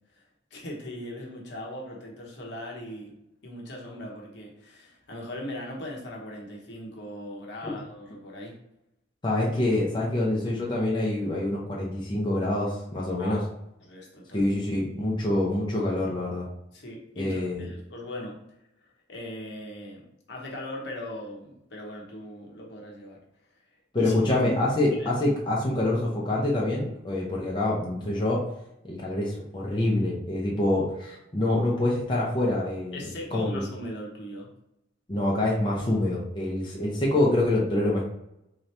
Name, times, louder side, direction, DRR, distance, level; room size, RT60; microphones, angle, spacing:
voice 1, 0.5-3.2 3.4-8.6 13.2-13.5 13.8-14.4 16.7-18.4 19.1-23.2 24.0-24.4 25.0-25.1 32.9-34.5, left 1 dB, 60° left, -2 dB, 1.0 m, -39 dB
voice 2, 9.2-13.4 14.3-16.5 17.2-17.7 23.9-28.4 28.8-33.0 33.3-33.6 35.1-38.0, left 1 dB, 25° left, -4 dB, 0.7 m, -26 dB
3.8 x 2.8 x 3.3 m, 0.82 s
head